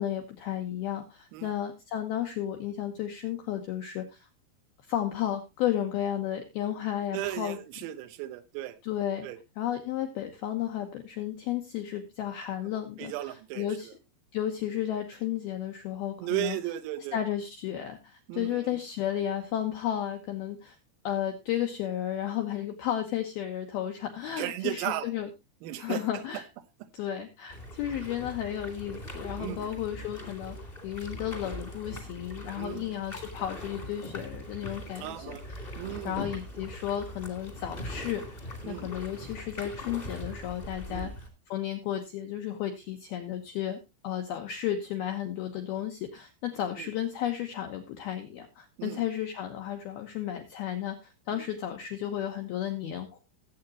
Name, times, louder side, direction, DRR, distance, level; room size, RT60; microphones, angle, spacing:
voice 1, 0.0-4.3 4.9-7.6 8.8-9.3 9.6-13.9 14.3-16.6 17.1-20.8 21.0-25.3 25.8-26.4 26.9-30.6 30.8-35.8 36.1-53.2, left 11 dB, 80° left, 4 dB, 2.2 m, -33 dB
voice 2, 7.1-8.8 9.2-9.4 13.0-13.9 16.2-17.2 18.3-18.8 24.4-25.1 25.6-26.0 29.4-29.7 32.6-32.9 35.0-35.5 35.8-36.2 38.6-38.9 40.9-41.1 46.8-46.9 48.8-49.0 51.3-51.4, right 14 dB, 85° right, 11 dB, 3.6 m, -35 dB
sound 1, 27.5-41.3, left 1 dB, 30° left, 1.0 m, -41 dB
18.5 x 7.9 x 2.8 m, 0.24 s
omnidirectional pair, 5.9 m